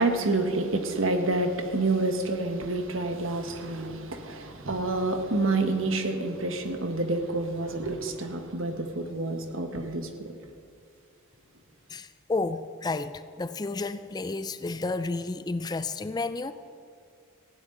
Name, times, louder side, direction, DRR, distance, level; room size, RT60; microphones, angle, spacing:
voice 1, 0.0-10.3, right 2 dB, 70° right, 6 dB, 1.4 m, -28 dB
voice 2, 11.9-16.5, left 3 dB, 20° left, 12 dB, 0.3 m, -31 dB
18.5 x 16.0 x 3.9 m, 2.3 s
head